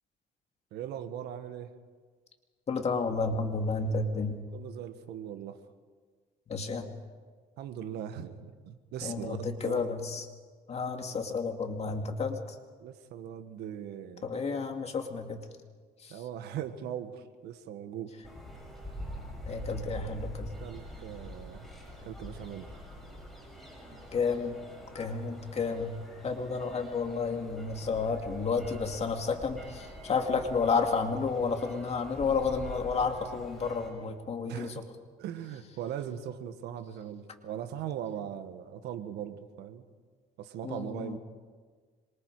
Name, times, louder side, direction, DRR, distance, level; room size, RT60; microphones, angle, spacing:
voice 1, 0.7-1.7 4.5-5.6 7.6-9.8 12.8-14.3 16.1-18.1 20.6-21.7 22.0-22.7 34.4-34.8 35.2-39.9 40.4-41.2, right 9 dB, 80° right, 9 dB, 1.6 m, -39 dB
voice 2, 2.7-4.4 6.5-6.9 9.0-10.3 10.7-12.4 14.2-15.4 16.0-16.2 19.4-20.5 24.1-24.6 24.9-26.0 26.2-34.7 40.6-41.2, left 4 dB, 40° left, 4 dB, 2.4 m, -31 dB
sound 1, 18.2-33.9, equal, ahead, 8.0 m, -45 dB
26.0 x 23.5 x 4.9 m, 1.5 s
cardioid pair, 110°, 17 cm